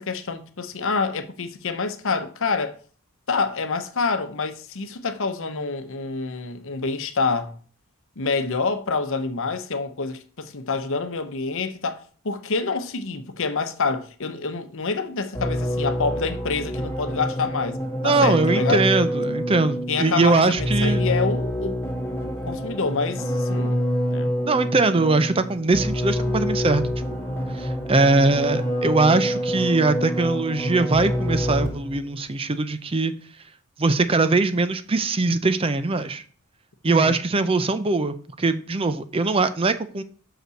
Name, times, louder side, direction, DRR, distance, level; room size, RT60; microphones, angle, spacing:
voice 1, 0.0-2.8 3.3-7.5 8.2-18.8 19.9-21.8 22.4-23.8 24.1-24.3 36.9-37.1, left 4 dB, 60° left, 0.9 m, -27 dB
sound 1, 15.3-32.0, equal, 10° left, 1.8 m, -26 dB
voice 2, 18.0-21.0 24.5-26.8 27.5-33.1 33.8-36.2 36.8-40.0, right 3 dB, 25° right, 0.5 m, -21 dB
6.0 x 5.5 x 6.3 m
head